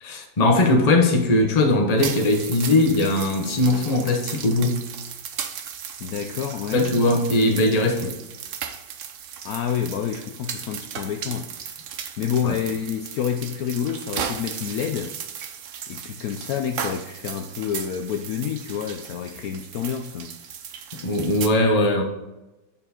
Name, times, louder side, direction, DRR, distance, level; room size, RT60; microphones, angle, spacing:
voice 1, 0.0-4.9 6.7-8.1 12.4-12.6 21.0-22.0, left 2 dB, 35° left, 0.7 m, -20 dB
sound 1, 2.0-21.5, right 8 dB, 80° right, 0.6 m, -36 dB
voice 2, 6.0-6.9 9.4-11.7 12.2-15.2 15.9-20.4, left 8 dB, 85° left, 0.8 m, -28 dB
8.9 x 4.6 x 4.3 m
omnidirectional pair, 2.2 m